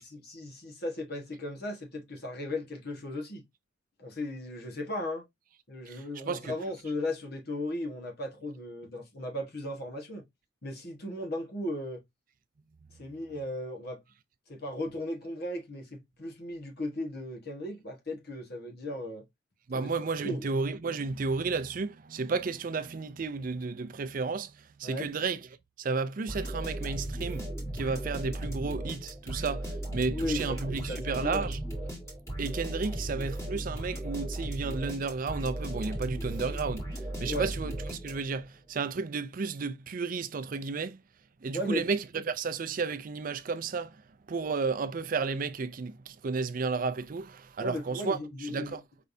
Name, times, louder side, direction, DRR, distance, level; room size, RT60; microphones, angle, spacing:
voice 1, 0.0-3.4 4.0-5.2 5.7-10.2 10.6-12.0 13.0-14.0 14.5-19.2 19.7-19.9 20.2-20.5 24.8-25.1 30.1-31.5 37.2-37.5 41.5-41.9 47.6-48.8, left 1 dB, 55° left, 1.3 m, -36 dB
voice 2, 5.9-6.5 19.7-25.4 25.8-27.5 27.7-31.6 32.4-41.0 41.4-44.0 44.3-48.2 48.5-48.8, right 4 dB, 45° right, 0.4 m, -32 dB
sound 1, 26.3-38.5, right 1 dB, 15° left, 1.9 m, -36 dB
5.2 x 3.3 x 2.6 m
head